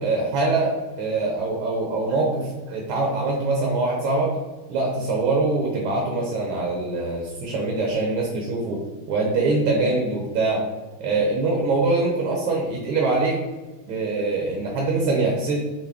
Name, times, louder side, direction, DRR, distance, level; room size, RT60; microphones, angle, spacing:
voice 1, 0.0-4.3 4.7-8.8 9.1-10.6 11.0-13.4 13.9-15.6, right 3 dB, 75° right, -1 dB, 1.5 m, -23 dB
5.9 x 2.1 x 3.4 m, 1.2 s
omnidirectional pair, 2.4 m